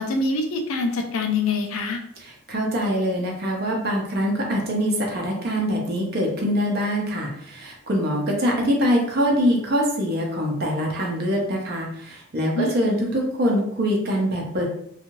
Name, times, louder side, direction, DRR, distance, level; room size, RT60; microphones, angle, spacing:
voice 1, 0.0-2.0 12.5-13.1, left 3 dB, 80° left, 5 dB, 0.5 m, -25 dB
voice 2, 2.5-14.6, equal, 50° right, 0 dB, 0.6 m, -24 dB
2.7 x 2.3 x 2.9 m, 0.69 s
head